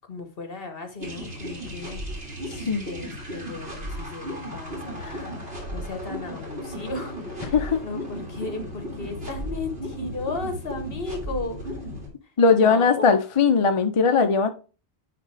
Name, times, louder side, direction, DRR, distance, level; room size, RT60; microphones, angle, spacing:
voice 1, 0.1-2.0 2.5-5.3 5.7-7.5 7.8-11.7 12.5-13.0, left 3 dB, 60° left, 6 dB, 1.5 m, -35 dB
sound 1, 1.0-12.1, equal, 65° right, 2.7 m, -35 dB
voice 2, 2.5-2.9 5.0-5.3 7.5-7.8 12.4-14.5, left 5 dB, 35° left, 7 dB, 0.6 m, -20 dB
10.0 x 3.9 x 3.3 m, 0.33 s
omnidirectional pair, 1.1 m